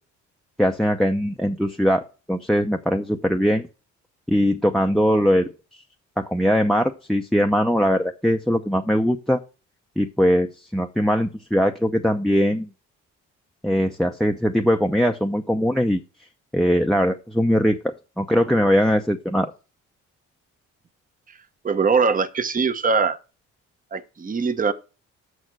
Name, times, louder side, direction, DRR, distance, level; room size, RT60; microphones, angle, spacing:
voice 1, 0.6-3.7 4.3-5.5 6.2-9.4 10.0-12.7 13.6-16.0 16.5-19.5, equal, ahead, 0.7 m, -21 dB
voice 2, 21.6-23.2 23.9-24.7, right 5 dB, 25° right, 0.9 m, -22 dB
6.6 x 6.4 x 6.1 m
cardioid pair, 90°, 30 cm